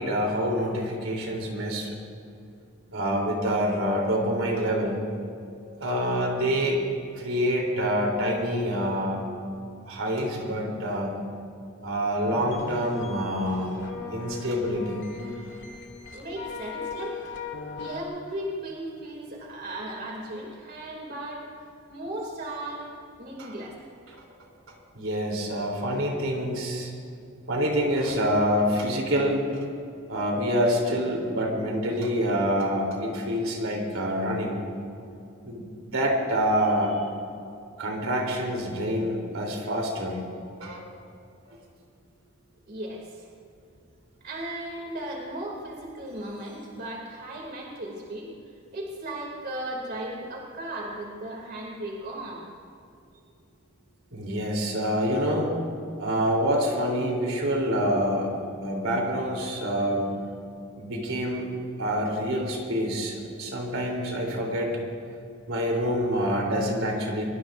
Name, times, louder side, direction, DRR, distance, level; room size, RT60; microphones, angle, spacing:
voice 1, 0.0-1.9 2.9-5.0 5.8-6.8 7.2-9.2 9.9-11.1 11.8-13.8 14.1-15.1 23.4-23.5 24.9-26.9 27.5-29.4 30.1-34.6 35.4-37.1 37.8-40.2 40.6-40.8 41.5-41.6 54.1-55.5 56.0-58.3 58.6-60.1 60.8-61.5 61.8-64.8 65.5-67.2, equal, 80° right, -1 dB, 3.5 m, -26 dB
sound 1, 12.2-18.0, left 4 dB, 60° left, 1.8 m, -39 dB
voice 2, 16.1-17.2 17.7-21.5 21.9-22.9 23.2-23.8 42.7-43.3 44.2-48.3 48.7-52.4, right 1 dB, 50° right, -1 dB, 2.8 m, -36 dB
24.0 x 23.0 x 2.6 m, 2.5 s
head